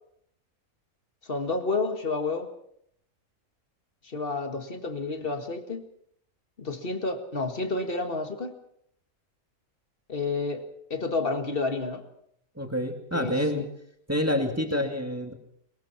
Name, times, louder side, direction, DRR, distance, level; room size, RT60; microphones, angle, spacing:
voice 1, 1.2-2.5 4.0-5.8 6.6-8.6 10.1-12.0 13.1-13.7 14.7-14.9, left 3 dB, 35° left, 7 dB, 2.1 m, -30 dB
voice 2, 12.6-13.6 14.1-15.3, left 1 dB, 10° right, 4 dB, 2.3 m, -27 dB
22.5 x 22.0 x 5.9 m, 0.71 s
omnidirectional pair, 1.6 m